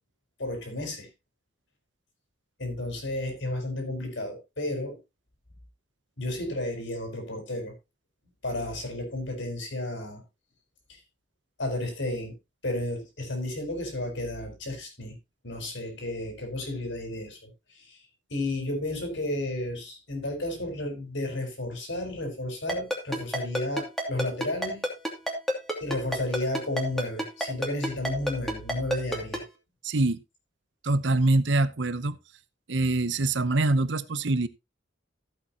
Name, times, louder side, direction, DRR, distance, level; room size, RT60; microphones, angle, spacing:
voice 1, 0.4-1.1 2.6-5.0 6.2-7.7 8.4-10.2 10.9-11.0 11.6-12.4 12.6-15.2 15.4-17.5 17.7-18.0 18.3-24.8 25.8-29.4, left 1 dB, 65° left, 4.7 m, -32 dB
Ringtone, 22.7-29.4, equal, ahead, 2.6 m, -28 dB
voice 2, 29.8-30.2 30.8-32.2 32.7-34.5, right 2 dB, 65° right, 0.8 m, -24 dB
14.5 x 8.2 x 2.9 m
head